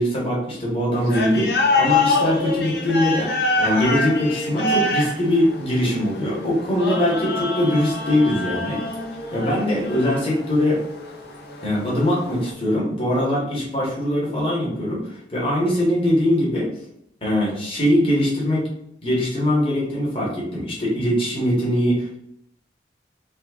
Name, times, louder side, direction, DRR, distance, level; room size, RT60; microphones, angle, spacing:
voice 1, 0.0-3.3 3.6-8.8 9.3-10.8 11.6-16.7 17.2-18.6 19.0-22.2, left 1 dB, 30° left, -5 dB, 1.7 m, -22 dB
sound 1, 0.9-12.5, left 3 dB, 60° left, 0.7 m, -25 dB
4.4 x 2.6 x 3.7 m, 0.76 s
head